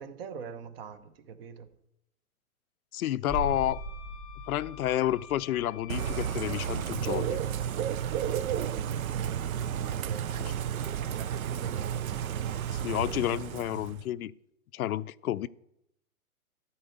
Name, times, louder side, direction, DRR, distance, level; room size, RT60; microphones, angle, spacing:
voice 1, 0.0-1.7 8.9-9.5 9.9-10.3 10.8-12.3, right 6 dB, 40° right, 0.9 m, -43 dB
voice 2, 2.9-3.8 4.5-7.4 10.4-10.5 12.7-14.3 14.7-15.5, left 13 dB, 75° left, 0.5 m, -30 dB
Wind instrument woodwind instrument, 3.3-6.7, left 9 dB, 25° left, 0.5 m, -50 dB
sound 1, 3.3-9.0 9.3-9.4, right 1 dB, 20° right, 2.8 m, -42 dB
Bird / Rain, 5.9-14.0, right 9 dB, 70° right, 0.7 m, -32 dB
12.5 x 4.5 x 7.9 m
hypercardioid pair, 155°, 43 cm